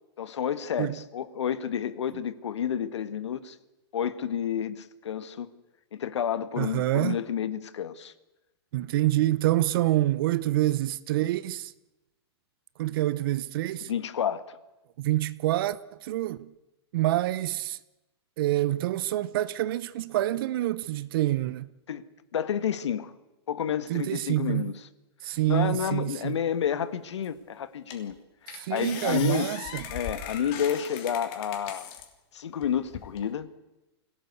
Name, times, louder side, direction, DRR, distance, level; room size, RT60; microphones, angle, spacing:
voice 1, 0.2-3.5 3.9-5.5 5.9-8.1 13.8-14.6 21.9-22.1 22.3-23.1 23.5-24.7 25.5-28.2 28.4-29.5 29.9-31.9 32.3-33.5, left 8 dB, 80° left, 1.7 m, -30 dB
voice 2, 6.6-7.2 8.7-11.7 12.8-13.9 15.0-16.5 16.9-17.8 18.4-21.7 23.9-24.6 25.2-26.4 28.5-29.9, right 15 dB, 55° right, 0.9 m, -27 dB
sound 1, 27.2-27.3 27.9-28.1 28.5-32.1 32.6-33.3, left 8 dB, 40° left, 3.1 m, -39 dB
24.5 x 17.5 x 8.2 m
hypercardioid pair, 140°, 15 cm